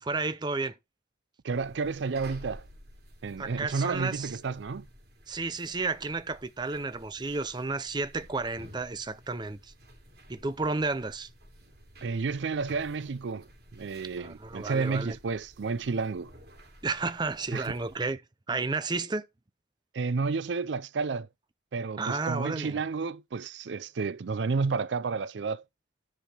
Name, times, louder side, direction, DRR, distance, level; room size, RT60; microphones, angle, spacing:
voice 1, 0.0-0.8 3.4-4.3 5.3-9.7 10.3-11.3 14.2-15.1 16.8-18.2 18.5-19.3 22.0-22.8, right 3 dB, 25° right, 0.5 m, -32 dB
voice 2, 1.4-2.6 3.2-4.9 12.0-16.3 17.5-17.7 19.9-21.3 21.7-25.6, right 4 dB, 75° right, 0.5 m, -31 dB
sound 1, 1.5-18.1, equal, 55° right, 3.6 m, -53 dB
10.0 x 5.6 x 4.4 m
head